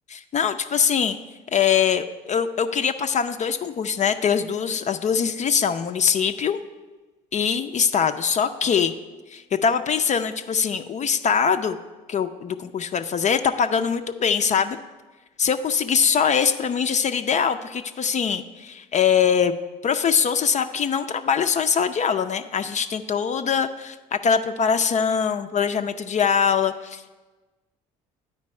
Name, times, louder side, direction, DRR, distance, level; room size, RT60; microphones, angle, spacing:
voice 1, 0.1-1.2 1.5-6.6 7.3-8.9 9.3-11.8 12.1-14.8 15.4-19.5 19.8-27.1, left 7 dB, 40° left, 9 dB, 0.4 m, -22 dB
9.5 x 4.5 x 4.3 m, 1.2 s
supercardioid pair, 70°, 19 cm